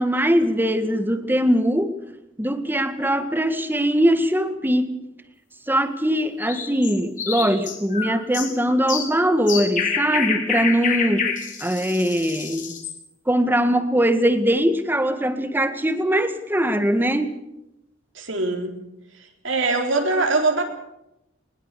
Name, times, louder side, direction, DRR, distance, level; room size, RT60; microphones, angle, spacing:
voice 1, 0.0-1.9 2.4-4.9 5.7-11.3 11.6-12.7 13.3-17.3, equal, 10° right, 9 dB, 1.7 m, -21 dB
sound 1, 6.4-13.0, left 6 dB, 40° left, 3.6 m, -27 dB
voice 2, 18.2-18.7 19.4-20.6, right 3 dB, 80° right, 3 dB, 4.0 m, -22 dB
21.5 x 21.0 x 6.9 m, 0.87 s
head